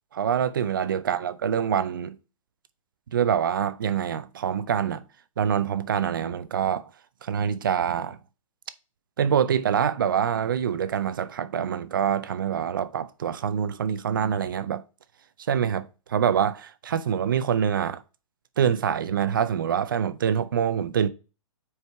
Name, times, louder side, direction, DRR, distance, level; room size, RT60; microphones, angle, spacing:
voice 1, 0.1-2.2 3.1-5.0 5.4-6.8 7.2-8.2 9.2-14.8 15.5-18.0 18.6-21.1, right 8 dB, 40° right, 0.4 m, -25 dB
5.6 x 4.7 x 4.5 m
hypercardioid pair, 175°, 18 cm